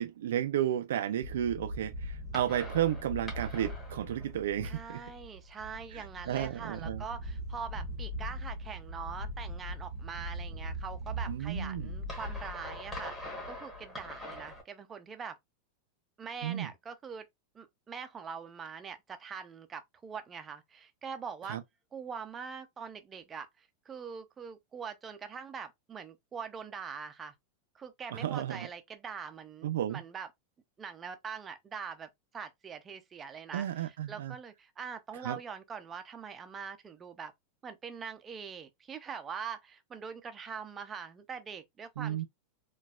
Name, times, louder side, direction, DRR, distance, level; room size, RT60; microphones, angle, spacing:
voice 1, 0.0-5.0 5.9-7.0 11.3-12.0 16.4-16.7 21.5-21.6 28.1-28.6 29.6-30.0 33.5-34.3 35.2-35.4 42.0-42.2, right 11 dB, 85° right, 0.3 m, -33 dB
sound 1, 1.2-14.6, equal, 5° left, 1.0 m, -40 dB
voice 2, 4.6-15.4 16.2-17.3 17.5-21.6 21.9-27.3 27.7-30.3 30.8-37.3 37.6-42.2, right 6 dB, 15° right, 0.4 m, -43 dB
4.1 x 2.3 x 2.3 m
supercardioid pair, 175°, 0 cm